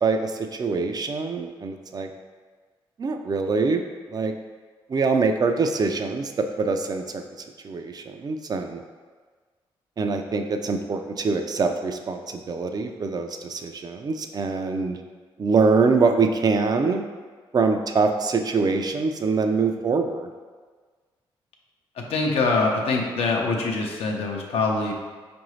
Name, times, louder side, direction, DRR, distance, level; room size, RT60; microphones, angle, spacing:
voice 1, 0.0-2.1 3.0-3.8 4.1-4.3 4.9-7.2 7.6-8.8 10.0-15.0 15.4-17.0 17.5-20.3, right 4 dB, 40° right, 5 dB, 0.4 m, -24 dB
voice 2, 22.0-24.9, left 3 dB, 75° left, 0 dB, 0.6 m, -24 dB
4.7 x 2.6 x 3.1 m, 1.5 s
supercardioid pair, 65°, 10 cm